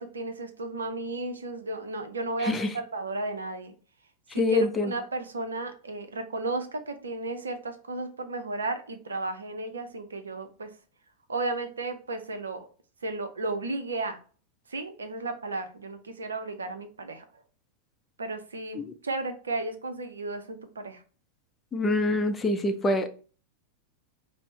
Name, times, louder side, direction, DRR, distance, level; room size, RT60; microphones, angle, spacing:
voice 1, 0.0-3.7 4.3-10.7 11.3-12.7 13.0-14.2 14.7-17.4 18.2-21.0, right 2 dB, 70° right, 8 dB, 0.6 m, -34 dB
voice 2, 4.4-4.9 18.8-18.9 21.7-23.1, left 2 dB, 15° left, 7 dB, 0.5 m, -25 dB
5.2 x 2.0 x 3.2 m, 0.39 s
figure-of-eight pair, 90°, 0 cm